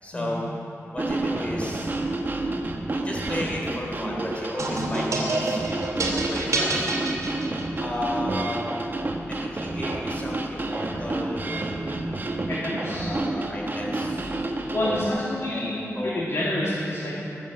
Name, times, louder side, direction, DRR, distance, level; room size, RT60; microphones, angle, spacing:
voice 1, 0.0-0.5 0.9-1.9 2.9-5.6 6.1-6.9 7.7-8.8 9.3-12.3 12.8-14.3 14.7-16.6, left 1 dB, 25° left, -3 dB, 3.4 m, -34 dB
sound 1, 1.0-15.1, right 2 dB, 35° right, 1.2 m, -29 dB
sound 2, 4.6-8.0, right 2 dB, 90° right, 2.6 m, -28 dB
voice 2, 12.5-13.1 14.7-17.2, left 1 dB, 65° left, -8 dB, 2.7 m, -28 dB
18.5 x 7.4 x 7.6 m, 2.9 s
wide cardioid pair, 120°, 5 cm